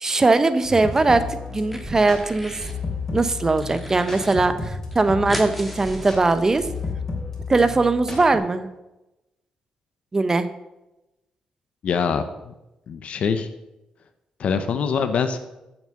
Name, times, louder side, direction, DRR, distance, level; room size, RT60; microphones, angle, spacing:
voice 1, 0.0-2.6 3.1-6.7 7.5-8.7 10.1-10.5, right 3 dB, 25° right, 11 dB, 0.8 m, -20 dB
sound 1, 0.6-8.4, left 3 dB, 20° left, 3.2 m, -33 dB
sound 2, 0.6-1.2 1.5-2.8 3.2-4.3 4.6-4.7 4.9-6.8, equal, ahead, 1.7 m, -37 dB
voice 2, 11.8-12.5 12.9-13.5 14.4-15.4, left 6 dB, 60° left, 9 dB, 0.8 m, -24 dB
9.0 x 7.3 x 6.5 m, 0.96 s
cardioid pair, 105°, 2 cm